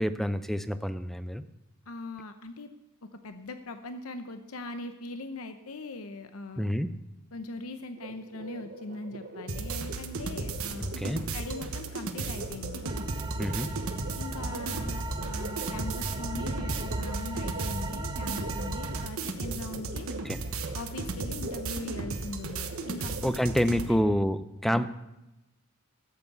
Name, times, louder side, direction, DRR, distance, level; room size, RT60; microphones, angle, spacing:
voice 1, 0.0-1.4 6.6-6.9 10.8-11.2 13.4-13.7 20.2-20.4 23.2-24.9, equal, ahead, 12 dB, 0.5 m, -28 dB
voice 2, 1.9-2.7 3.2-6.7 7.3-11.0 11.3-12.8 14.2-20.1 20.7-23.5 23.9-24.0, left 2 dB, 75° left, 8 dB, 0.8 m, -40 dB
sound 1, 8.0-23.3, right 2 dB, 50° right, 1.1 m, -44 dB
sound 2, 9.5-23.9, right 3 dB, 75° right, 1.2 m, -35 dB
sound 3, 12.9-19.1, right 1 dB, 20° right, 0.8 m, -37 dB
13.5 x 8.1 x 6.9 m, 0.96 s
head